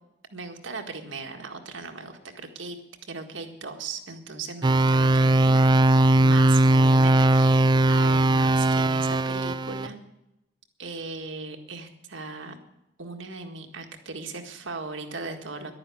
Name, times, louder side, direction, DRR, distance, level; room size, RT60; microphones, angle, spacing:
voice 1, 0.3-2.8 3.1-10.0 10.8-12.5 13.0-15.7, right 3 dB, 70° right, 5 dB, 1.8 m, -38 dB
sound 1, 4.6-9.9, right 1 dB, 25° right, 0.5 m, -19 dB
11.5 x 9.9 x 8.5 m, 0.89 s
head